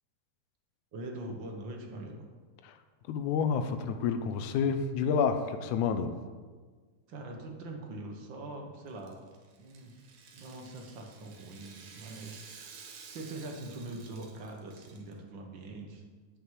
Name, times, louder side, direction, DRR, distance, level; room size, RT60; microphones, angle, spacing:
voice 1, 0.9-2.3 7.1-9.2 9.6-9.9 10.3-12.5 13.1-16.0, right 2 dB, 50° right, 1 dB, 1.5 m, -43 dB
voice 2, 3.1-6.2, left 6 dB, 85° left, 8 dB, 2.1 m, -29 dB
Rattle (instrument), 8.9-15.1, right 5 dB, 75° right, 2.6 m, -52 dB
9.0 x 6.4 x 7.4 m, 1.5 s
omnidirectional pair, 3.4 m